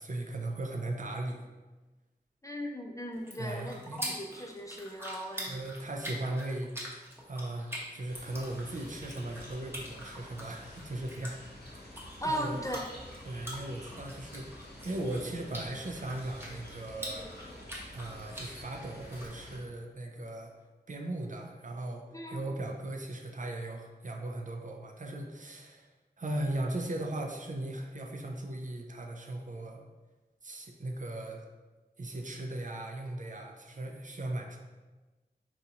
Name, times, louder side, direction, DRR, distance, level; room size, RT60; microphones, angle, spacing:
voice 1, 0.0-1.5 3.4-4.1 5.4-6.7 7.2-12.7 13.2-17.3 17.9-20.5 20.9-29.8 30.4-31.4 32.0-34.6, right 1 dB, 50° right, 1 dB, 0.5 m, -38 dB
voice 2, 2.4-5.7 12.2-12.9 22.1-22.4, equal, 20° left, 2 dB, 0.4 m, -37 dB
sound 1, 3.1-19.3, equal, 15° right, 0.9 m, -45 dB
sound 2, 8.1-19.6, left 1 dB, 75° left, 0.7 m, -49 dB
4.0 x 2.4 x 2.8 m, 1.2 s
wide cardioid pair, 45°, 17 cm